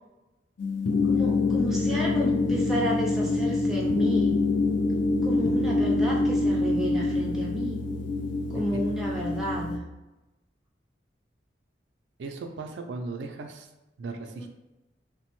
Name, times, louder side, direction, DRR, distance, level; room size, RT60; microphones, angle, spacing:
sound 1, 0.6-9.8, left 3 dB, 80° left, 0.4 m, -25 dB
voice 1, 1.0-4.4 5.2-7.8 8.5-9.8 14.2-14.5, equal, 5° right, -3 dB, 0.4 m, -32 dB
voice 2, 12.2-13.7 14.0-14.5, right 3 dB, 75° right, 5 dB, 0.3 m, -37 dB
3.0 x 2.1 x 2.9 m, 1.0 s
head